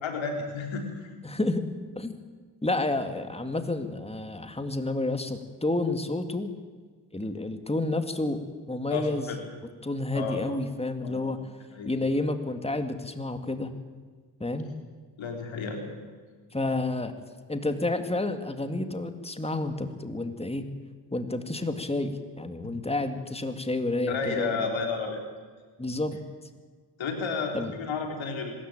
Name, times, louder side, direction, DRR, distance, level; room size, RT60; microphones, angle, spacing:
voice 1, 0.0-1.1 8.9-9.4 10.1-10.4 11.0-11.3 11.7-11.9 15.2-16.0 22.6-22.7 24.1-25.2 27.0-28.5, left 4 dB, 85° left, 3 dB, 3.8 m, -32 dB
voice 2, 1.2-1.7 2.0-2.1 2.6-6.5 7.1-8.4 8.7-9.3 9.8-11.4 11.8-13.7 14.4-14.7 16.5-17.1 17.5-20.7 21.1-24.7 25.8-26.2 27.5-27.7, left 2 dB, 15° left, 8 dB, 2.2 m, -30 dB
24.0 x 14.0 x 9.0 m, 1.5 s
cardioid pair, 55°, 45 cm